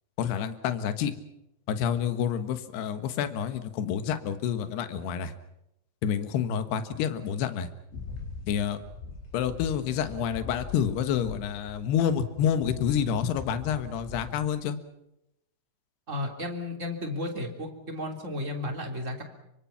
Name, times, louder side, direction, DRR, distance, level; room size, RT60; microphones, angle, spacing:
voice 1, 0.2-1.1 1.7-5.3 6.0-7.7 8.5-8.8 9.3-14.8, left 8 dB, 65° left, 9 dB, 3.0 m, -28 dB
sound 1, 7.9-12.1 12.4-14.5, left 4 dB, 90° left, 7.2 m, -42 dB
voice 2, 16.1-19.2, left 1 dB, 20° right, 2 dB, 2.6 m, -33 dB
26.5 x 25.0 x 5.9 m, 0.84 s
omnidirectional pair, 5.9 m